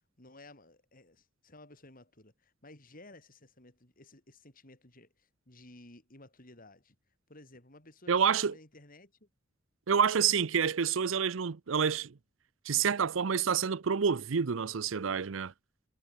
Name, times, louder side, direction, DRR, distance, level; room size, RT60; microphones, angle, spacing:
voice 1, 0.2-7.0 7.3-9.3 9.9-10.1, left 2 dB, 45° left, 5.7 m, -55 dB
voice 2, 8.1-8.5 9.9-12.2 12.7-15.5, right 7 dB, 85° right, 0.6 m, -28 dB
head